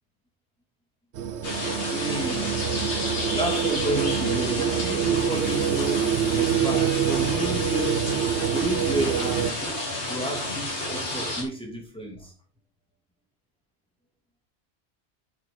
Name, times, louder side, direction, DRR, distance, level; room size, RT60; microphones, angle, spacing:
sound 1, 1.1-9.5, right 9 dB, 85° right, 1.0 m, -26 dB
sound 2, 1.4-11.4, left 1 dB, 85° left, 3.1 m, -31 dB
voice 1, 1.9-2.7 3.3-8.1 8.5-9.8 10.1-12.3, right 2 dB, 5° left, 2.6 m, -31 dB
8.4 x 7.2 x 3.9 m
omnidirectional pair, 1.1 m